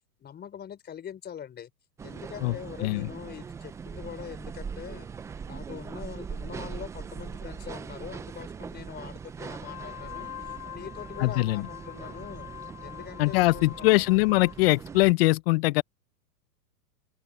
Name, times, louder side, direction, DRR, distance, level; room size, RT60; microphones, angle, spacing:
voice 1, 0.2-1.7 2.0-5.1 5.5-10.3 10.7-12.5 12.8-14.0, left 9 dB, 20° left, 4.3 m, -43 dB
sound 1, 2.0-15.1, right 6 dB, 5° right, 0.5 m, -41 dB
Wind instrument woodwind instrument, 9.5-14.8, left 13 dB, 70° left, 5.0 m, -43 dB
voice 2, 11.2-11.6 13.2-15.8, left 22 dB, 40° left, 0.8 m, -22 dB
open air
hypercardioid pair, 125°, 48 cm